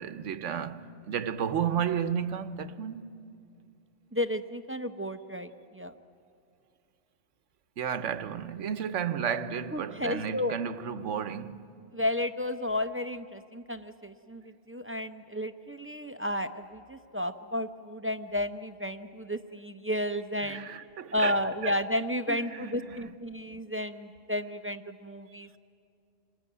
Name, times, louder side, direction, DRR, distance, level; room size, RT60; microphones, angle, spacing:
voice 1, 0.0-3.0 7.8-11.7 20.4-21.8 22.3-23.1, right 8 dB, 80° right, 1.2 m, -33 dB
voice 2, 4.1-5.9 9.7-10.5 11.9-14.4 14.7-20.7 21.1-25.6, left 1 dB, 15° right, 0.5 m, -32 dB
27.0 x 19.5 x 9.3 m
omnidirectional pair, 1.2 m